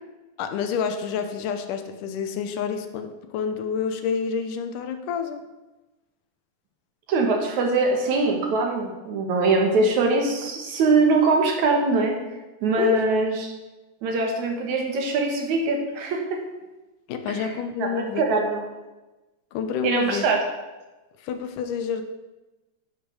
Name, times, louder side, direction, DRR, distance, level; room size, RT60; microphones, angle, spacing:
voice 1, 0.4-5.4 12.8-13.0 17.1-18.2 19.5-20.3 21.2-22.0, left 7 dB, 85° left, 7 dB, 2.4 m, -28 dB
voice 2, 7.1-12.2 12.6-13.5 14.0-16.4 17.4-17.5 17.8-18.6 19.8-20.4, right 3 dB, 70° right, 2 dB, 2.8 m, -22 dB
10.0 x 5.9 x 6.2 m, 1.1 s
omnidirectional pair, 3.6 m